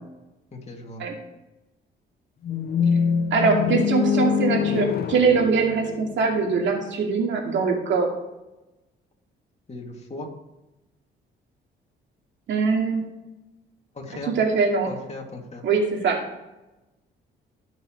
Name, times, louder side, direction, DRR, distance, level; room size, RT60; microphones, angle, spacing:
voice 1, 0.5-1.0 9.7-10.3 13.9-14.3 14.9-15.7, left 2 dB, 35° left, 0 dB, 2.5 m, -37 dB
sound 1, 2.4-6.6, left 7 dB, 50° left, 0.6 m, -25 dB
voice 2, 3.3-8.1 12.5-13.1 14.4-14.9 15.6-16.2, right 4 dB, 70° right, 1 dB, 2.4 m, -22 dB
17.0 x 6.2 x 3.2 m, 0.99 s
cardioid pair, 90°, 20 cm